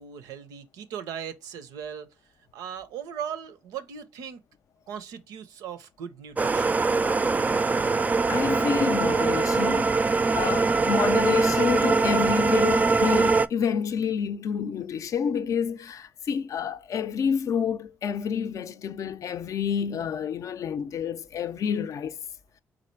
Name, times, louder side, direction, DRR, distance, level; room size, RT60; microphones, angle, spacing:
voice 1, 0.0-2.1 2.5-4.4 4.9-6.8, right 8 dB, 85° right, 0.6 m, -38 dB
sound 1, 6.4-13.5, right 4 dB, 25° right, 0.3 m, -22 dB
voice 2, 8.3-10.0 10.3-22.2, left 7 dB, 60° left, 0.4 m, -28 dB
4.2 x 2.5 x 4.4 m
supercardioid pair, 60°, 6 cm